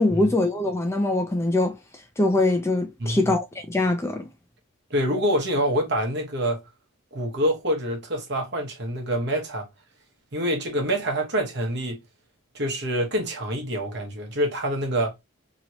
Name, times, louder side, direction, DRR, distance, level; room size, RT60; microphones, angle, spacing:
voice 1, 0.0-1.7 2.2-4.3, left 2 dB, 15° left, 0.5 m, -23 dB
voice 2, 3.0-3.4 4.9-6.6 7.1-9.7 10.3-12.0 12.5-15.2, equal, 55° right, 1.0 m, -26 dB
3.0 x 2.8 x 2.9 m
head